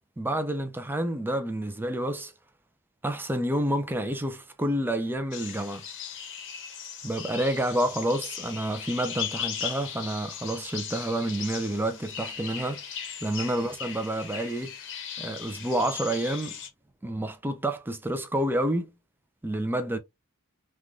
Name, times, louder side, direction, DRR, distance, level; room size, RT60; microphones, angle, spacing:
voice 1, 0.2-2.3 3.0-5.8 7.0-12.8 13.2-14.7 15.2-16.6 17.0-18.9 19.4-20.0, right 1 dB, 10° right, 0.4 m, -29 dB
sound 1, 5.3-16.7, left 8 dB, 60° left, 0.8 m, -38 dB
3.3 x 2.4 x 2.3 m
head